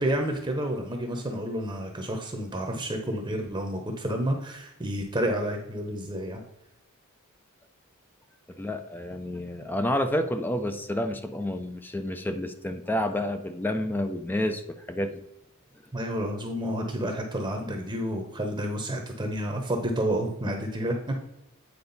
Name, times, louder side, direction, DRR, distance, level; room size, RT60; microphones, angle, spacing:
voice 1, 0.0-6.4 15.9-21.2, right 1 dB, 20° right, 3 dB, 0.8 m, -30 dB
voice 2, 8.6-15.2, left 1 dB, 10° left, 7 dB, 0.4 m, -29 dB
8.7 x 4.7 x 4.0 m, 0.87 s
head